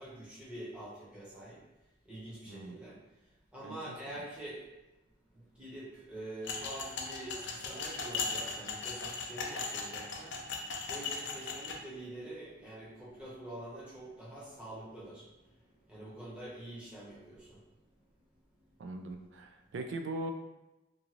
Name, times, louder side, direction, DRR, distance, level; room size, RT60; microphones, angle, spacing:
voice 1, 0.0-1.6 2.0-3.0 3.5-4.6 5.3-15.3 15.9-17.6, right 1 dB, 5° right, -8 dB, 0.8 m, -46 dB
voice 2, 2.5-2.8 3.6-4.2 18.8-20.3, right 2 dB, 60° right, 5 dB, 0.3 m, -41 dB
sound 1, 6.4-11.8, left 4 dB, 60° left, 0.4 m, -38 dB
2.6 x 2.4 x 3.0 m, 1.0 s
head